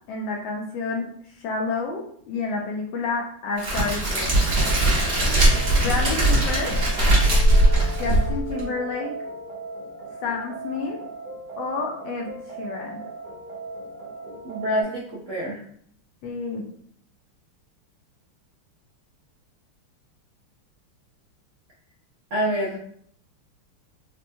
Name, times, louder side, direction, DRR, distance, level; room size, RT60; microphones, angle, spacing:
voice 1, 0.1-1.1 1.4-4.4 5.8-6.8 8.0-9.1 10.2-11.0 11.6-12.3 12.6-13.0 16.2-16.6, left 3 dB, 75° left, 0 dB, 1.1 m, -29 dB
Crackle, 3.6-8.6, right 1 dB, 40° right, 0.8 m, -20 dB
sound 1, 4.5-14.8, right 2 dB, 55° right, 1.2 m, -37 dB
voice 2, 14.4-15.6 22.3-22.8, equal, 75° right, -5 dB, 0.6 m, -26 dB
4.4 x 2.1 x 2.6 m, 0.64 s
omnidirectional pair, 2.4 m